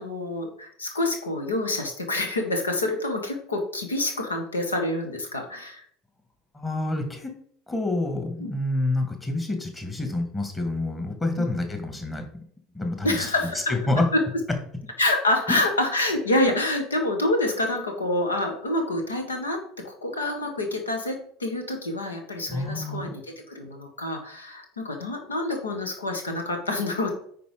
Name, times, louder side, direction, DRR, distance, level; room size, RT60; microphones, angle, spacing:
voice 1, 0.0-5.8 8.4-8.5 11.4-11.5 13.0-13.6 15.0-19.6 19.8-23.2 23.5-27.1, left 2 dB, 80° left, 4 dB, 1.6 m, -27 dB
voice 2, 6.5-7.3 7.7-12.3 12.7-13.3 13.7-14.1 15.5-15.6 22.5-23.1, left 2 dB, 15° left, 4 dB, 2.0 m, -27 dB
9.3 x 4.5 x 5.0 m, 0.62 s
figure-of-eight pair, 70°, 0 cm